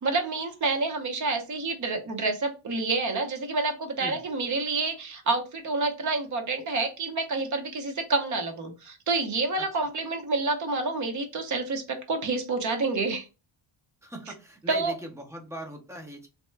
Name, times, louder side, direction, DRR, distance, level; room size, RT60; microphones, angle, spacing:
voice 1, 0.0-13.3 14.7-14.9, right 3 dB, 35° right, 4 dB, 0.7 m, -28 dB
voice 2, 14.0-16.3, right 1 dB, 5° right, 2 dB, 0.4 m, -39 dB
2.9 x 2.1 x 3.1 m, 0.29 s
cardioid pair, 180°, 50 cm